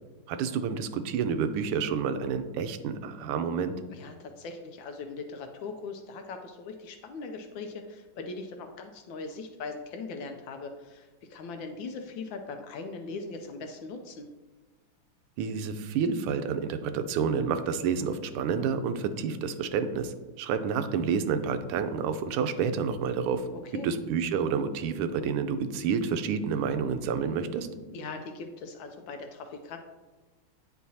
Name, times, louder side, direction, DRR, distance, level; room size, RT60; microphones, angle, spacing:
voice 1, 0.3-3.8 15.4-23.4 23.8-27.7, right 6 dB, 85° right, 9 dB, 1.5 m, -29 dB
voice 2, 3.9-14.3 23.5-23.9 27.9-29.8, left 4 dB, 75° left, 5 dB, 1.2 m, -40 dB
9.1 x 4.6 x 2.7 m, 1.2 s
omnidirectional pair, 2.4 m